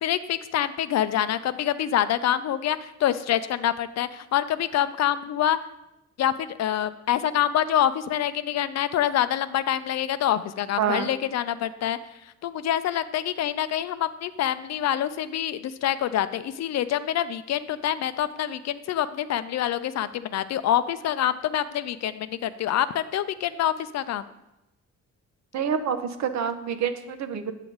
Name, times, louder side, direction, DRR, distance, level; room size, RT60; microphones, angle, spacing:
voice 1, 0.0-5.6 6.2-12.0 12.4-24.2, left 11 dB, 60° left, 13 dB, 0.5 m, -26 dB
voice 2, 10.8-11.1 25.5-27.5, right 7 dB, 65° right, 9 dB, 0.8 m, -27 dB
8.2 x 6.1 x 3.9 m, 0.91 s
cardioid pair, 90°, 30 cm